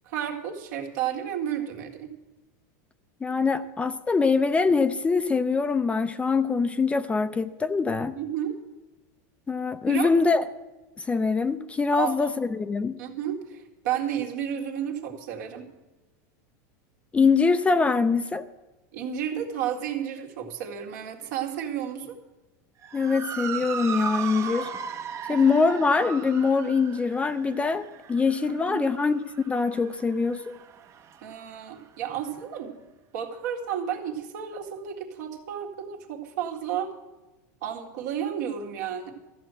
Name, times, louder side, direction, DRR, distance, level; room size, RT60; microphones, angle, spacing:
voice 1, 0.0-2.1 8.2-8.6 9.9-10.1 11.9-12.3 13.0-15.7 18.9-22.2 25.3-25.4 28.7-28.8 31.2-32.8 33.1-36.9 37.6-39.1, right 9 dB, 70° right, 3 dB, 2.0 m, -32 dB
voice 2, 3.2-8.1 9.5-10.5 11.0-13.0 17.1-18.5 22.9-24.7 25.3-29.2 29.5-30.6, left 4 dB, 15° left, 11 dB, 0.5 m, -23 dB
Motor vehicle (road) / Siren, 22.8-31.4, right 7 dB, 30° right, 0.8 m, -37 dB
14.0 x 7.7 x 7.6 m, 1.1 s
supercardioid pair, 135°, 9 cm